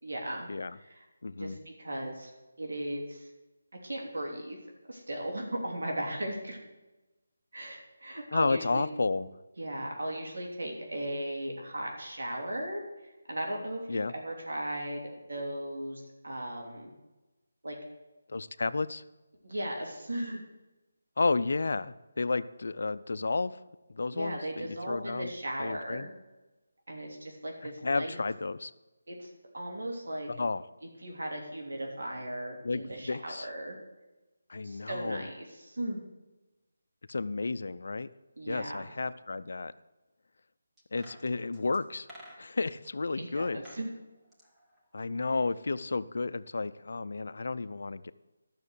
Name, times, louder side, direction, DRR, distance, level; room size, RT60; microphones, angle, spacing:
voice 1, 0.0-0.5 0.8-1.0 1.4-2.3 2.6-3.3 3.8-4.6 4.9-6.6 7.5-8.8 9.6-15.0 15.3-16.9 17.6-17.8 19.4-20.4 24.1-26.1 26.9-28.2 29.1-30.3 31.0-33.8 34.6-36.0 38.4-38.9 43.2-43.9, right 1 dB, 80° right, 0 dB, 3.2 m, -37 dB
voice 2, 1.2-1.6 8.3-9.3 13.9-14.1 18.3-19.0 21.2-23.6 23.9-25.3 25.6-26.1 27.6-28.7 30.3-30.6 32.6-33.5 34.5-35.3 37.1-38.1 38.5-39.7 40.9-42.1 42.4-43.6 44.9-48.1, left 3 dB, 60° left, 14 dB, 0.5 m, -32 dB
sound 1, 40.8-42.8 43.4-43.9 44.2-45.5 45.8-45.9, equal, 5° right, 1.3 m, -53 dB
12.5 x 6.5 x 8.2 m, 1.1 s
figure-of-eight pair, 170°, 0 cm